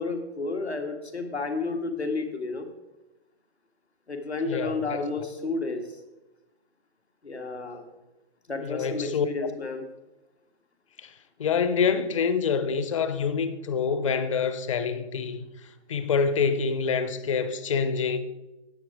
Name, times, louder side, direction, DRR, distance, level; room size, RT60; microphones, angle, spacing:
voice 1, 0.0-2.7 4.1-5.8 7.2-7.9 8.5-9.8, left 3 dB, 85° left, 1.8 m, -31 dB
voice 2, 4.5-5.3 8.6-9.3 11.0-11.1 11.4-15.5 15.9-18.2, left 5 dB, 30° left, 0.6 m, -26 dB
9.9 x 7.9 x 4.8 m
figure-of-eight pair, 140°, 32 cm